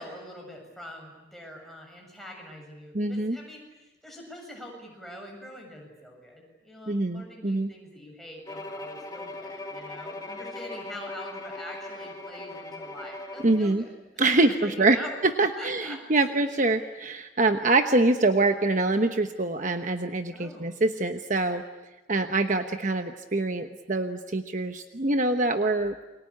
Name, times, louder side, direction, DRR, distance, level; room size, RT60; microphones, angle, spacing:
voice 1, 0.0-13.9 14.3-15.1 15.6-16.3 20.3-20.7, equal, ahead, 0 dB, 7.2 m, -44 dB
voice 2, 2.9-3.4 6.9-7.7 13.4-13.8 14.2-15.0 15.2-21.6 22.1-26.0, right 2 dB, 40° right, 7 dB, 1.1 m, -25 dB
Bowed string instrument, 8.5-13.8, left 2 dB, 20° left, 2.2 m, -39 dB
29.0 x 23.5 x 8.7 m, 1.0 s
head